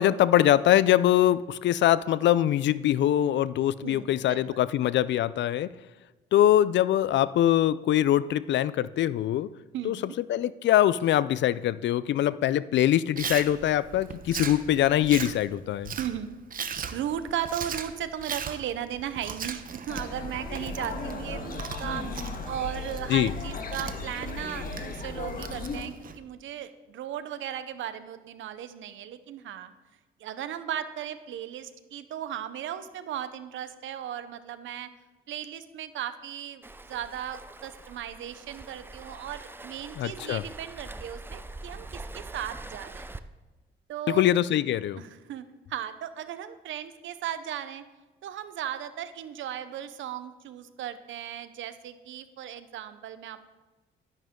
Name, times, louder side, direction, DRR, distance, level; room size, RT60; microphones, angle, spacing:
voice 1, 0.0-5.7 6.3-9.5 9.8-10.0 10.3-15.9 23.1-23.3 40.0-40.4 44.1-45.0, left 12 dB, 65° left, 17 dB, 0.5 m, -23 dB
voice 2, 3.8-4.6 9.7-10.1 15.9-16.3 16.9-29.7 30.2-34.9 35.3-36.6 36.9-43.1 43.9-44.2 44.9-47.8 48.2-53.4, right 10 dB, 75° right, 12 dB, 0.8 m, -36 dB
Chewing mastication, 13.2-26.2, right 7 dB, 45° right, 0.9 m, -39 dB
sound 1, 19.9-25.8, left 3 dB, 45° left, 1.6 m, -36 dB
Waves surf, 36.6-43.2, right 2 dB, 10° right, 0.5 m, -43 dB
11.5 x 10.5 x 3.7 m, 1.2 s
cardioid pair, 90°, 20 cm